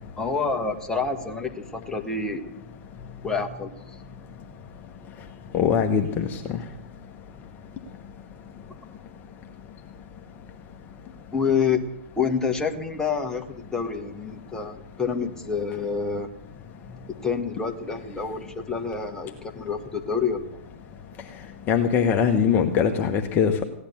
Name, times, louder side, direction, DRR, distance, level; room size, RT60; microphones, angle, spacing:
voice 1, 0.2-2.5 3.2-3.7 11.3-11.8 12.2-16.3 17.2-20.5, left 5 dB, 10° left, 4 dB, 1.5 m, -27 dB
voice 2, 5.5-6.4 21.7-23.6, left 7 dB, 30° left, 4 dB, 1.1 m, -21 dB
16.0 x 10.5 x 7.1 m, 0.87 s
hypercardioid pair, 120°, 7 cm